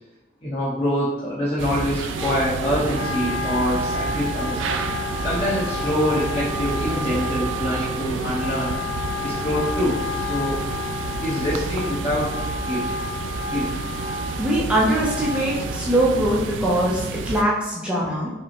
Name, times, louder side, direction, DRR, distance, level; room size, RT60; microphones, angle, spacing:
voice 1, 0.4-4.6 5.2-8.8 9.2-10.6 11.2-12.3 12.6-12.9 13.4-13.7, equal, 30° left, -9 dB, 1.0 m, -25 dB
sound 1, 1.6-17.4, right 4 dB, 70° right, 0.3 m, -30 dB
Wind instrument woodwind instrument, 2.1-16.2, left 3 dB, 35° right, 0.8 m, -31 dB
voice 2, 14.4-18.3, right 1 dB, 5° right, -5 dB, 0.6 m, -22 dB
5.2 x 2.1 x 2.9 m, 0.98 s
head